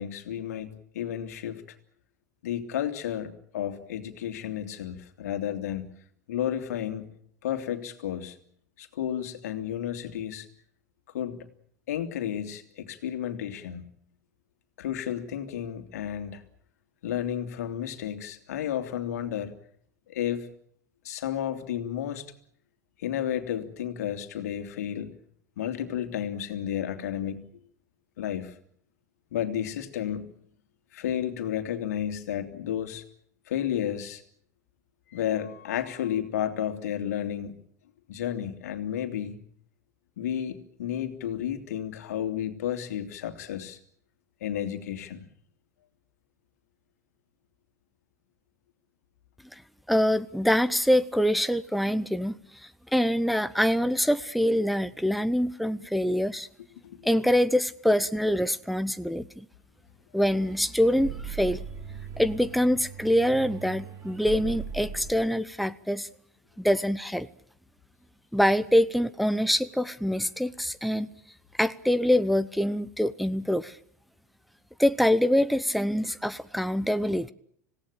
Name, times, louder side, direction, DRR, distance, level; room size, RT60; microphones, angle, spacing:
voice 1, 0.0-1.8 2.4-5.9 6.3-7.1 7.4-8.4 8.8-10.5 11.1-11.4 11.9-13.9 14.8-16.4 17.0-19.5 20.1-20.5 21.0-22.3 23.0-25.2 25.6-27.4 28.2-28.5 29.3-30.3 30.9-33.0 33.5-34.2 35.1-37.5 38.1-39.4 40.2-43.8 44.4-45.2 56.0-56.2 56.8-57.0, left 10 dB, 70° left, 8 dB, 2.8 m, -32 dB
voice 2, 49.9-52.3 52.6-56.5 57.0-59.4 60.1-61.6 62.2-66.1 66.6-67.3 68.3-71.1 71.6-73.8 74.8-77.3, equal, ahead, 13 dB, 0.9 m, -25 dB
sound 1, 60.2-65.2, right 7 dB, 30° right, 4.7 m, -39 dB
26.5 x 17.5 x 8.8 m, 0.66 s
hypercardioid pair, 80°, 9 cm